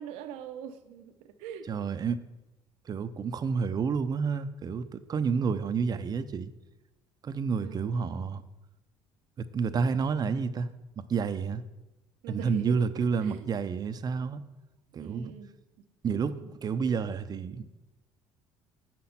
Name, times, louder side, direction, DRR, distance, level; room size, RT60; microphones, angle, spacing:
voice 1, 0.0-1.7 7.6-8.0 12.2-12.9 13.2-13.5 15.0-15.5 15.8-15.9, right 9 dB, 85° right, 9 dB, 0.8 m, -43 dB
voice 2, 1.7-2.2 2.9-6.5 7.2-8.4 9.4-10.7 11.1-11.6 12.3-14.4 14.9-15.3 16.0-17.7, right 5 dB, 40° right, 12 dB, 0.6 m, -30 dB
7.5 x 5.9 x 5.8 m, 1.0 s
supercardioid pair, 90°, 11 cm